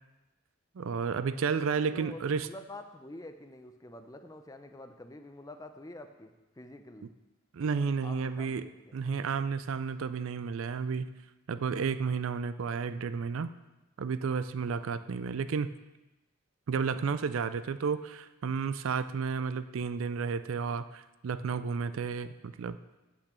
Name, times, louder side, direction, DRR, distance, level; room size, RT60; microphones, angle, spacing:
voice 1, 0.8-2.5 7.5-8.7 8.9-11.1 11.5-13.5 14.0-15.7 16.7-22.8, right 5 dB, 70° right, 13 dB, 0.4 m, -32 dB
voice 2, 1.3-7.1 8.0-9.0, left 1 dB, 15° left, 7 dB, 0.5 m, -48 dB
8.2 x 5.9 x 6.8 m, 1.1 s
head